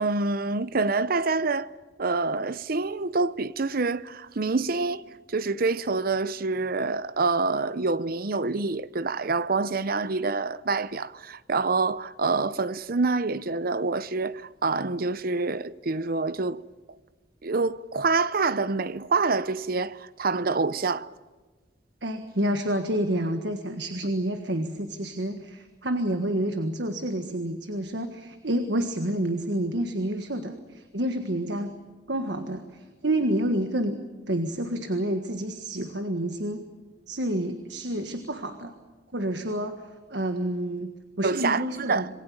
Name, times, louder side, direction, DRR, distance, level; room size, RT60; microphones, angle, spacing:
voice 1, 0.0-1.7 2.0-5.0 5.3-16.6 17.4-21.1 41.2-42.1, right 3 dB, 55° right, 0.8 m, -26 dB
voice 2, 22.0-31.7 32.1-36.6 37.1-38.7 39.1-39.8 40.1-42.1, right 1 dB, 70° right, 1.6 m, -29 dB
27.0 x 20.5 x 8.6 m
head